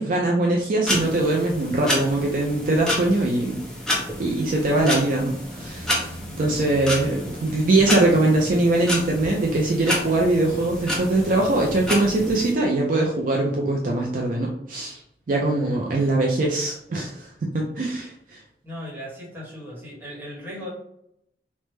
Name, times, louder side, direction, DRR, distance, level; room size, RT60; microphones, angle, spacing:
voice 1, 0.0-3.6 4.2-6.1 6.4-15.0 15.3-18.4, right 2 dB, 50° right, 0 dB, 0.4 m, -22 dB
sound 1, 0.9-12.5, left 1 dB, 5° left, 0.7 m, -30 dB
voice 2, 18.6-20.7, equal, 10° right, -6 dB, 1.1 m, -37 dB
3.2 x 2.1 x 3.1 m, 0.75 s
head